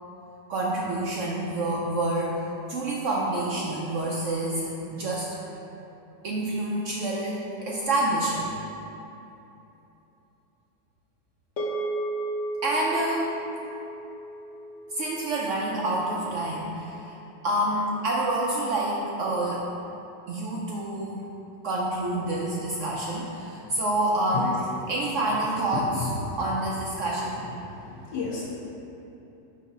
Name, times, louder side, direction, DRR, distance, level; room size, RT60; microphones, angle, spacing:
voice 1, 0.5-2.4 2.7-5.3 6.2-8.5 12.6-13.3 14.9-19.6 20.3-21.3 21.6-26.1 26.4-27.4, right 1 dB, 75° right, -3 dB, 0.7 m, -28 dB
sound 1, 11.6-16.1, right 2 dB, 50° left, 1.1 m, -34 dB
voice 2, 27.7-28.5, left 5 dB, 75° left, -10 dB, 1.5 m, -33 dB
6.6 x 2.8 x 5.3 m, 3.0 s
omnidirectional pair, 1.9 m